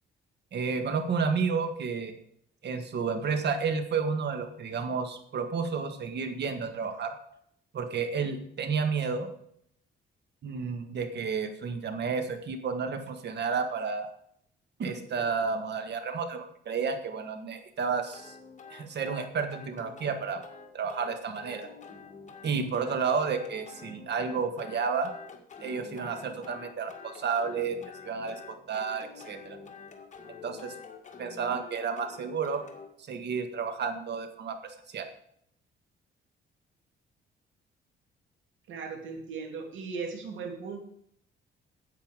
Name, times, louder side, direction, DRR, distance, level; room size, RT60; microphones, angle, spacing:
voice 1, 0.5-2.1 2.6-7.1 7.7-9.3 10.4-14.1 14.8-18.4 18.7-20.4 20.7-21.7 22.4-25.1 25.6-27.8 28.1-29.6 30.4-30.7 31.2-32.6 33.1-35.1, right 5 dB, 60° right, 8 dB, 1.7 m, -31 dB
sound 1, 18.1-32.9, left 5 dB, 35° left, 2.0 m, -48 dB
voice 2, 38.7-40.8, right 5 dB, 75° right, 3 dB, 2.7 m, -37 dB
9.8 x 8.4 x 5.1 m, 0.68 s
cardioid pair, 90°, 20 cm